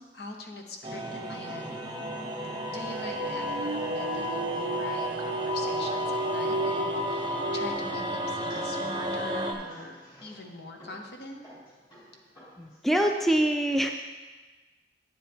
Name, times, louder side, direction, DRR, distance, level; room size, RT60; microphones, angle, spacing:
voice 1, 0.0-1.8 2.7-11.4, left 2 dB, 65° left, 3 dB, 1.0 m, -43 dB
sound 1, 0.8-9.5, equal, 25° right, 0.7 m, -32 dB
sound 2, 2.9-7.7, right 2 dB, 85° right, 0.4 m, -34 dB
sound 3, 7.9-12.9, equal, 25° left, 2.8 m, -53 dB
voice 2, 12.6-13.9, right 1 dB, ahead, 4 dB, 0.3 m, -24 dB
9.1 x 7.4 x 3.5 m, 1.3 s
head